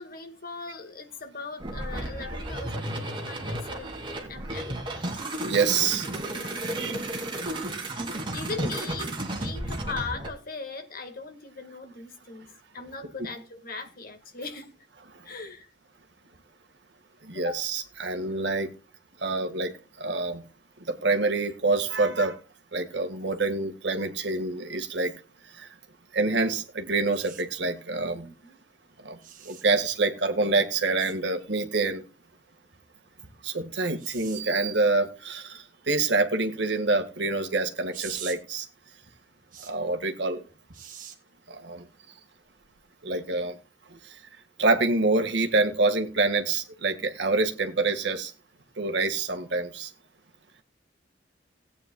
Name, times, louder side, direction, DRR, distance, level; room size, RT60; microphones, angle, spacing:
voice 1, 0.0-4.7 6.2-6.9 8.3-14.7 15.2-15.7 17.3-17.6 28.2-28.6, left 4 dB, 55° left, 1.7 m, -39 dB
sound 1, 1.6-10.3, right 1 dB, 25° right, 2.4 m, -33 dB
voice 2, 5.4-6.1 6.7-7.2 17.3-18.7 19.2-19.7 20.0-20.4 20.9-22.4 22.7-25.1 25.5-25.7 26.1-28.3 29.0-29.2 29.4-32.0 33.4-38.7 39.7-40.4 41.5-41.8 43.0-43.6 43.9-44.0 44.6-48.3 48.8-49.9, right 3 dB, 70° right, 1.7 m, -26 dB
sound 2, 27.1-27.4 29.2-29.6 31.0-31.2 34.0-34.4 37.9-38.4 39.5-39.7 40.7-41.2 42.6-42.8, right 9 dB, 50° right, 1.8 m, -42 dB
18.0 x 9.0 x 2.3 m
head